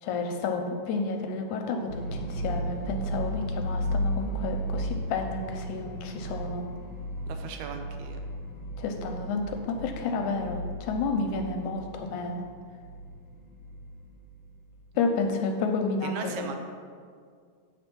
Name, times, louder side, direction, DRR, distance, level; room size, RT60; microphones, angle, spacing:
voice 1, 0.0-6.6 8.8-12.4 15.0-16.5, left 3 dB, 80° left, 4 dB, 1.9 m, -30 dB
sound 1, 1.9-14.8, equal, 55° left, 1.6 m, -35 dB
voice 2, 7.3-8.2 16.0-16.6, right 6 dB, 80° right, 5 dB, 2.0 m, -38 dB
8.0 x 4.3 x 5.9 m, 2.1 s
omnidirectional pair, 3.7 m